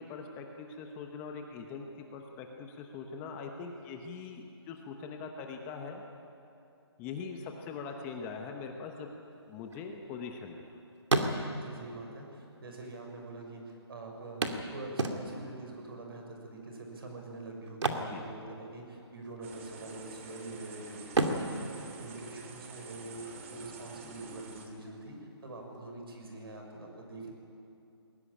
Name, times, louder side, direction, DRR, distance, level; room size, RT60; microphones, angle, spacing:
voice 1, 0.0-6.0 7.0-9.1 9.5-10.8 18.1-18.2, left 5 dB, 15° left, 3 dB, 0.9 m, -42 dB
sound 1, 9.4-10.7 11.0-11.8 12.7-12.8 13.1-13.2 14.4-15.6 17.7-19.0 19.2-19.5 20.0-20.6 21.1-22.8 24.8-24.9 25.3-25.4, right 2 dB, 90° right, 2.5 m, -32 dB
voice 2, 11.5-14.4 14.7-27.3, right 2 dB, 55° right, 2 dB, 6.4 m, -45 dB
sound 2, 19.4-24.7, right 3 dB, 30° right, 2.3 m, -48 dB
21.5 x 17.0 x 10.0 m, 2.7 s
hypercardioid pair, 165°, 14 cm